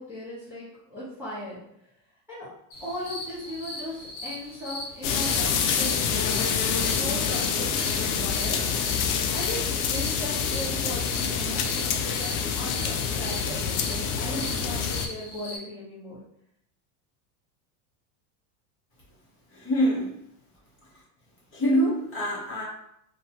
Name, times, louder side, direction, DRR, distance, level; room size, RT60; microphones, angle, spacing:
voice 1, 0.0-1.6 2.3-2.5 2.8-8.6 9.3-16.2, left 1 dB, 5° right, -13 dB, 0.8 m, -37 dB
sound 1, 2.7-15.6, left 1 dB, 55° left, 1.0 m, -39 dB
sound 2, 5.0-15.1, left 6 dB, 85° left, 0.5 m, -27 dB
voice 2, 19.5-20.2 21.5-22.6, equal, 30° left, -7 dB, 0.9 m, -25 dB
2.7 x 2.2 x 2.8 m, 0.76 s
supercardioid pair, 155°, 45 cm